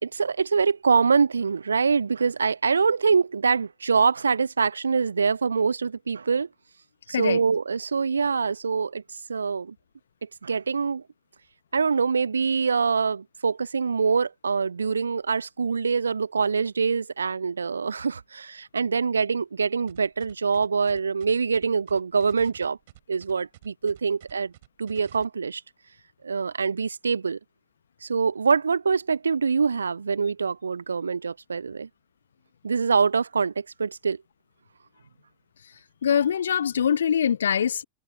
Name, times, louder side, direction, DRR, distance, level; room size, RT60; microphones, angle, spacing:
voice 1, 0.0-6.5 7.1-9.0 9.3-9.7 10.4-11.0 11.7-22.8 23.1-24.5 24.8-25.6 26.2-27.4 28.0-31.9 32.6-34.2, right 5 dB, 75° right, 0.8 m, -24 dB
sound 1, 19.9-25.2, right 15 dB, 55° right, 5.7 m, -51 dB
voice 2, 36.0-37.8, left 8 dB, 65° left, 0.8 m, -23 dB
figure-of-eight pair, 90°, 0 cm